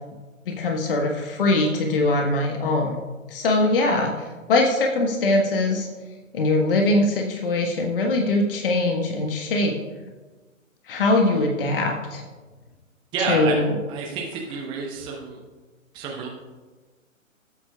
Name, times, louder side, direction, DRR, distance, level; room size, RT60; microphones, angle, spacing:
voice 1, 0.5-3.0 3.3-5.9 6.3-9.7 10.9-12.2 13.3-13.7, left 2 dB, 40° left, 2 dB, 1.3 m, -22 dB
voice 2, 13.1-13.5 13.9-15.4 15.9-16.3, right 5 dB, 10° right, -2 dB, 0.9 m, -29 dB
19.5 x 8.4 x 2.3 m, 1.3 s
figure-of-eight pair, 130°, 40 cm